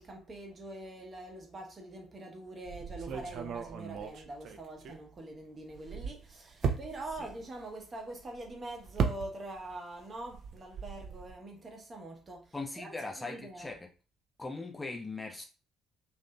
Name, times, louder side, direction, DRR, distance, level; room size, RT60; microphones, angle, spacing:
voice 1, 0.0-12.9 13.2-13.7, right 2 dB, 35° right, 0.8 m, -44 dB
sound 1, 2.7-5.4 5.7-9.8 10.0-11.3, right 6 dB, 50° right, 0.3 m, -37 dB
voice 2, 12.5-13.9 14.4-15.4, left 3 dB, 15° left, 0.5 m, -40 dB
2.7 x 2.5 x 2.2 m
figure-of-eight pair, 50°, 0 cm